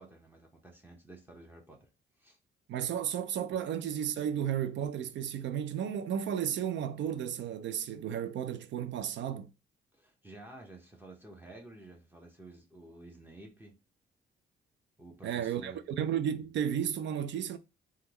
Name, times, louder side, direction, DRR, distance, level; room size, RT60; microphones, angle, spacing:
voice 1, 0.0-1.9 2.2-2.4 9.9-13.8 15.0-15.8, right 2 dB, 10° right, 0.9 m, -51 dB
voice 2, 2.7-9.5 15.2-17.6, right 9 dB, 65° right, 0.4 m, -33 dB
3.5 x 2.3 x 2.9 m
cardioid pair, 90°, 20 cm